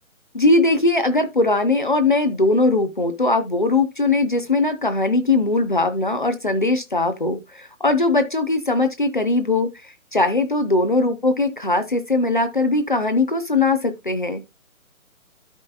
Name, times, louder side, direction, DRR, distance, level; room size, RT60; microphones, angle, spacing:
voice 1, 0.3-14.4, left 2 dB, 35° left, 0.7 m, -20 dB
13.0 x 5.3 x 2.3 m
hypercardioid pair, 175°, 43 cm